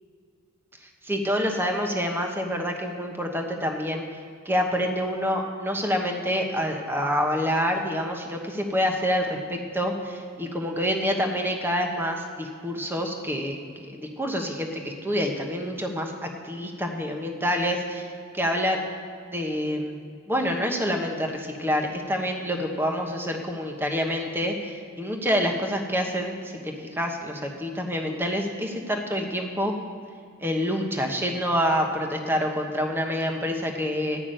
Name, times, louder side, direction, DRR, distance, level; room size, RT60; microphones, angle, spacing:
voice 1, 1.0-4.1 4.4-18.1 18.3-18.9 19.3-20.0 20.3-26.5 26.9-29.7 30.4-34.2, equal, 10° right, 2 dB, 1.0 m, -27 dB
12.5 x 6.0 x 9.0 m, 2.3 s
head